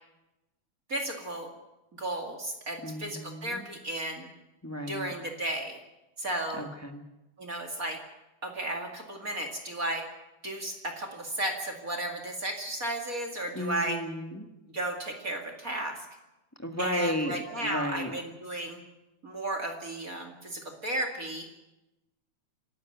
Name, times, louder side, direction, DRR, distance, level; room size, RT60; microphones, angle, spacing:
voice 1, 0.9-1.5 2.0-4.3 4.9-5.8 6.2-6.7 7.4-8.0 8.4-10.1 10.4-14.0 14.7-16.0 16.8-18.8 19.2-21.5, right 1 dB, 30° right, 2 dB, 2.4 m, -34 dB
voice 2, 2.8-3.7 4.6-5.1 6.5-7.0 13.5-14.5 16.6-18.2, equal, 10° left, 3 dB, 0.8 m, -33 dB
27.0 x 12.5 x 9.1 m, 1.0 s
omnidirectional pair, 3.4 m